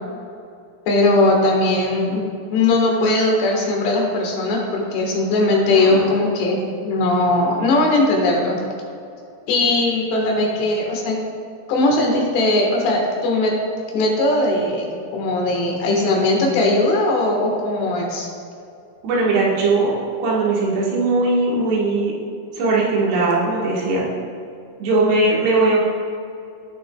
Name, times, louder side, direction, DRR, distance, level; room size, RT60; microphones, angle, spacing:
voice 1, 0.9-8.6 9.5-11.2 11.7-13.5 13.9-18.3, left 2 dB, 85° left, -1 dB, 3.6 m, -19 dB
voice 2, 5.7-6.1 19.0-19.9 20.2-22.1 22.6-24.0 24.8-25.8, right 3 dB, 85° right, -5 dB, 3.7 m, -19 dB
16.5 x 6.4 x 2.3 m, 2.5 s
omnidirectional pair, 4.8 m